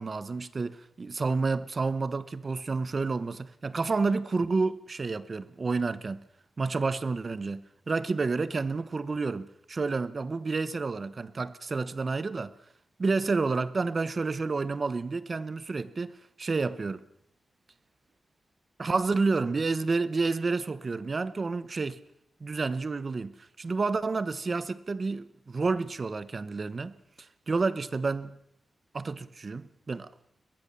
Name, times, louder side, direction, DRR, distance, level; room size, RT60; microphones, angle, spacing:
voice 1, 0.0-6.2 6.6-12.5 13.0-17.0 18.8-22.0 22.4-26.9 27.5-28.3 28.9-30.1, right 4 dB, 30° right, 0.9 m, -30 dB
22.5 x 19.5 x 6.9 m
wide cardioid pair, 175°, 0 cm